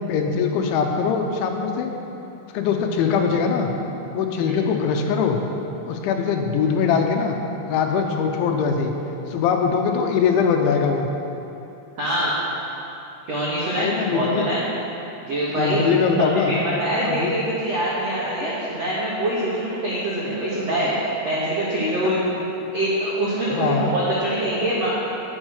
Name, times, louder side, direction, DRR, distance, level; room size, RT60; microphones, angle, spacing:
voice 1, 0.1-1.9 2.5-3.7 4.1-5.4 5.9-7.4 7.7-8.9 9.3-11.1 13.8-14.5 15.5-16.6 17.0-17.3 18.4-18.5 22.0-22.3 23.5-23.9, left 6 dB, 75° left, 3 dB, 3.1 m, -22 dB
voice 2, 12.0-12.3 13.3-14.6 15.2-15.9 16.2-22.2 22.7-24.9, right 1 dB, 50° right, -8 dB, 2.0 m, -24 dB
17.5 x 7.2 x 6.4 m, 2.9 s
omnidirectional pair, 5.7 m